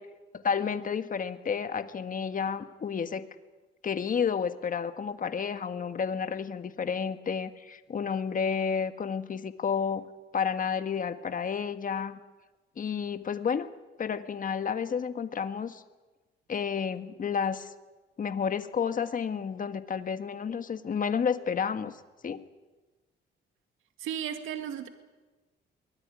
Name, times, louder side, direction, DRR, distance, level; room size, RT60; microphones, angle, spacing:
voice 1, 0.3-3.3 3.8-10.0 10.3-12.2 12.8-13.7 14.0-15.8 16.5-17.7 18.2-22.0 22.2-22.4, left 6 dB, 45° left, 10 dB, 1.5 m, -31 dB
voice 2, 24.0-24.9, right 9 dB, 85° right, 7 dB, 2.0 m, -34 dB
23.5 x 17.0 x 9.8 m, 1.2 s
cardioid pair, 90°, 20 cm